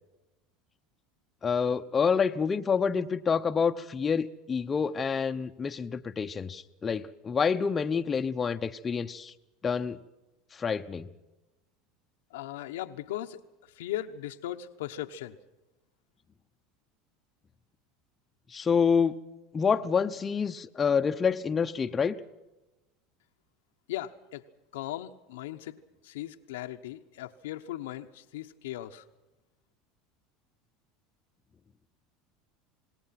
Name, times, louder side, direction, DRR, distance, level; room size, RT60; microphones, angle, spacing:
voice 1, 1.4-9.3 9.6-10.0 10.5-11.1 18.5-19.2 19.5-22.2, left 6 dB, 25° left, 7 dB, 0.9 m, -27 dB
voice 2, 12.3-15.4 23.9-24.4 24.7-29.0, left 13 dB, 85° left, 6 dB, 1.1 m, -38 dB
27.0 x 19.5 x 6.0 m, 1.0 s
supercardioid pair, 110°, 0 cm